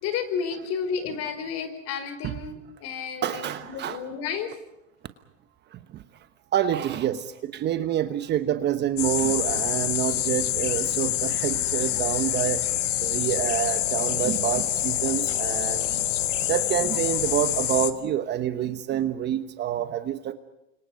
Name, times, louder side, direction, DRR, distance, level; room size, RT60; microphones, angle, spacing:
voice 1, 0.0-4.5, left 6 dB, 40° left, 4.8 m, -31 dB
voice 2, 3.2-4.0 5.7-6.0 6.5-12.6 13.0-16.0 16.5-20.3, right 10 dB, 25° right, 1.1 m, -27 dB
sound 1, 9.0-17.9, left 12 dB, 70° left, 1.9 m, -26 dB
30.0 x 26.0 x 5.3 m
hypercardioid pair, 120°, 38 cm